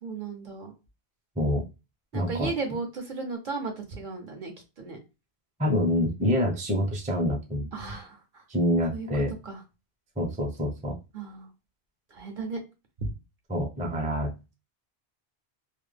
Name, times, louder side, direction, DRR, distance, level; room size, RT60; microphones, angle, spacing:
voice 1, 0.0-0.7 2.1-5.0 7.7-8.4 8.9-9.6 11.1-11.5 12.1-12.6 13.0-13.1, right 4 dB, 55° right, 2 dB, 0.8 m, -35 dB
voice 2, 2.1-2.5 5.6-7.7 8.5-9.3 10.2-11.0 13.5-14.5, left 1 dB, 10° right, 0 dB, 0.5 m, -26 dB
2.4 x 2.0 x 3.2 m, 0.27 s
omnidirectional pair, 1.1 m